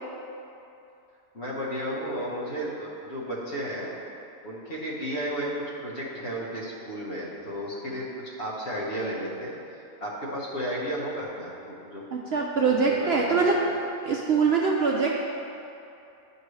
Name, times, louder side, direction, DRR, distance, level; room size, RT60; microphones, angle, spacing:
voice 1, 1.3-4.0 4.4-5.5 5.8-9.5 10.0-12.0 12.7-13.4, equal, 50° left, -5 dB, 1.5 m, -33 dB
voice 2, 12.1-13.6 14.0-15.1, right 5 dB, 60° right, -2 dB, 0.7 m, -23 dB
10.5 x 5.3 x 3.2 m, 2.7 s
omnidirectional pair, 1.5 m